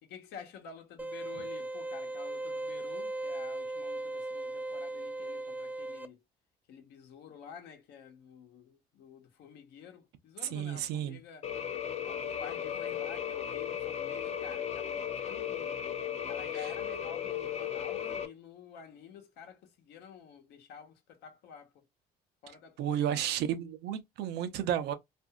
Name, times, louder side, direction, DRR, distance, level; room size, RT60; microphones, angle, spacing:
voice 1, 0.0-6.2 6.7-11.5 12.0-16.0 16.3-21.8 22.4-23.5, left 7 dB, 80° left, 0.9 m, -50 dB
sound 1, 1.0-6.1, right 2 dB, 10° right, 0.3 m, -37 dB
voice 2, 10.5-11.2 16.5-16.7 22.8-24.9, right 10 dB, 80° right, 0.6 m, -32 dB
sound 2, 11.4-18.3, left 9 dB, 40° left, 0.5 m, -36 dB
2.8 x 2.6 x 2.2 m
cardioid pair, 110°, 17 cm